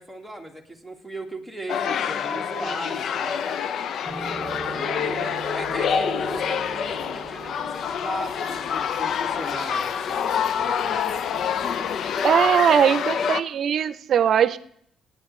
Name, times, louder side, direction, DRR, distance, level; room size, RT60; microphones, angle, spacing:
voice 1, 0.0-3.5 4.7-10.3 10.5-11.0 11.3-11.8, right 1 dB, 5° left, 3 dB, 2.0 m, -38 dB
sound 1, 1.7-13.4, left 7 dB, 60° left, 0.6 m, -27 dB
sound 2, 4.1-10.6 10.9-11.2 11.6-12.1 12.5-12.6, right 4 dB, 25° right, 1.0 m, -40 dB
voice 2, 12.2-14.6, right 8 dB, 60° right, 14 dB, 0.7 m, -20 dB
23.5 x 9.5 x 3.2 m, 0.67 s
cardioid pair, 95°, 0 cm